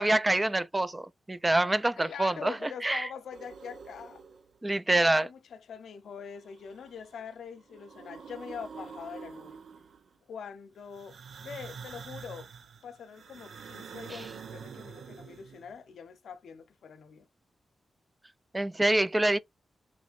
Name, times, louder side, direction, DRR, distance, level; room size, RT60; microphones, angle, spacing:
voice 1, 0.0-3.1 4.6-5.3 18.5-19.4, right 1 dB, 20° right, 0.4 m, -26 dB
voice 2, 2.0-4.2 4.9-9.6 10.3-12.5 12.8-17.3, left 7 dB, 85° left, 0.5 m, -44 dB
sound 1, 3.3-4.6 6.3-7.2 7.6-10.1 10.9-15.8, right 6 dB, 80° right, 0.5 m, -47 dB
3.2 x 3.0 x 4.1 m
cardioid pair, 55°, 0 cm